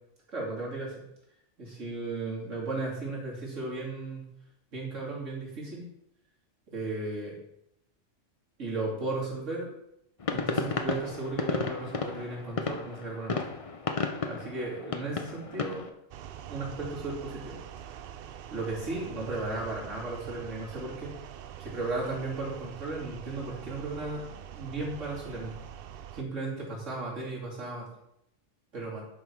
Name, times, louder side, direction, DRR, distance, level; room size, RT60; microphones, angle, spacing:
voice 1, 0.3-1.0 1.6-4.3 4.7-5.9 6.7-7.4 8.6-9.7 10.3-13.5 14.2-15.8 16.5-17.9 18.5-21.1 21.6-25.6 26.1-27.9 28.7-29.0, right 2 dB, 80° right, -4 dB, 3.1 m, -35 dB
sound 1, 10.2-15.9, left 4 dB, 35° left, 0.6 m, -33 dB
sound 2, 16.1-26.2, right 10 dB, 60° right, 0.6 m, -44 dB
11.0 x 5.6 x 4.6 m, 0.80 s
omnidirectional pair, 1.3 m